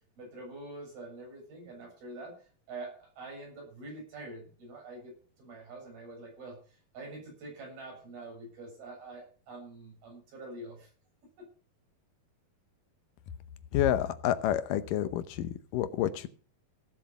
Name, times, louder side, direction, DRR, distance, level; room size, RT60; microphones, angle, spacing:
voice 1, 0.2-10.9 11.4-11.5, right 2 dB, 70° right, 0 dB, 9.5 m, -46 dB
voice 2, 13.7-16.3, left 11 dB, 70° left, 12 dB, 2.2 m, -29 dB
17.5 x 7.4 x 5.9 m, 0.41 s
omnidirectional pair, 4.5 m